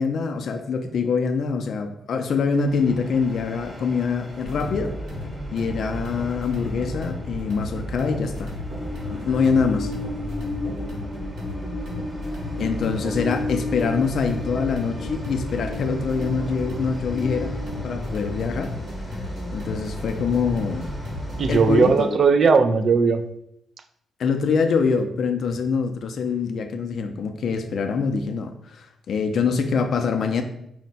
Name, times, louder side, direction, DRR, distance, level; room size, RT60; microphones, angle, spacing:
voice 1, 0.0-4.9 5.5-8.6 9.1-9.9 12.6-17.6 17.8-18.7 19.5-20.9 21.5-22.2 24.2-30.4, left 5 dB, 60° left, 6 dB, 0.4 m, -24 dB
Train, 2.6-22.1, left 1 dB, 5° right, 0.9 m, -36 dB
sound 1, 4.4-21.8, left 1 dB, 70° right, 1.5 m, -33 dB
voice 2, 13.0-13.4 21.4-23.2, right 5 dB, 50° right, 8 dB, 0.4 m, -18 dB
4.5 x 2.1 x 4.0 m, 0.76 s
cardioid pair, 120°, 0 cm